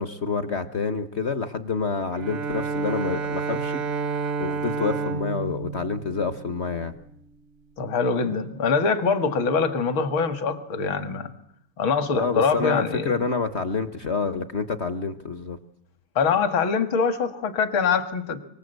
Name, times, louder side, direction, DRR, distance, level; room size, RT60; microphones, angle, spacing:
voice 1, 0.0-6.9 12.1-15.6, left 4 dB, 40° left, 11 dB, 1.0 m, -28 dB
Bowed string instrument, 2.1-7.1, right 5 dB, 80° right, 2.3 m, -30 dB
voice 2, 7.8-11.3 11.8-13.2 16.2-18.4, left 5 dB, 65° left, 10 dB, 2.5 m, -24 dB
25.0 x 24.5 x 8.1 m, 0.75 s
omnidirectional pair, 2.4 m